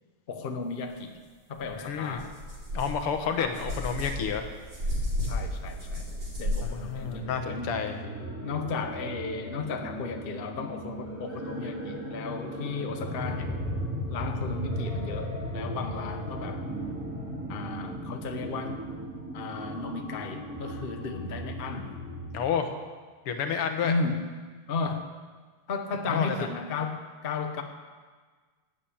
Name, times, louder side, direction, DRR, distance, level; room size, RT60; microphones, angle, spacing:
voice 1, 0.3-1.2 1.5-2.3 3.4-3.6 5.2-6.1 6.4-7.8 8.4-13.5 14.1-16.7 17.5-18.8 19.3-21.9 23.8-24.2 24.7-25.1 25.7-27.6, left 4 dB, 40° left, 5 dB, 0.8 m, -34 dB
sound 1, 1.5-1.7 2.1-7.1, left 1 dB, 55° right, 5.2 m, -33 dB
voice 2, 1.8-2.2 2.7-4.5 6.6-8.0 22.3-22.7 23.3-23.9 26.1-26.5, left 7 dB, 85° left, 7 dB, 2.1 m, -30 dB
sound 2, 7.0-22.5, equal, 5° right, 3.7 m, -36 dB
11.0 x 9.3 x 8.6 m, 1.5 s
omnidirectional pair, 2.4 m